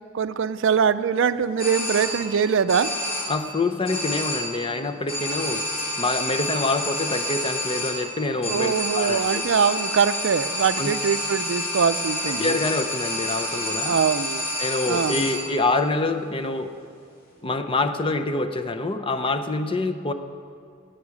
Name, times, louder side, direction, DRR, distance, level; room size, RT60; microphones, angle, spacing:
voice 1, 0.1-2.9 8.4-12.6 13.8-14.4 14.9-15.3, right 6 dB, 65° right, 13 dB, 0.4 m, -23 dB
sound 1, 1.6-2.4 2.7-3.5 3.8-4.7 5.1-15.6, left 1 dB, 45° left, 3.3 m, -29 dB
voice 2, 3.3-5.6 6.0-9.4 10.8-10.9 12.3-13.9 14.6-16.7 17.4-20.1, left 3 dB, 25° left, 9 dB, 0.6 m, -26 dB
11.0 x 9.0 x 8.4 m, 2.4 s
head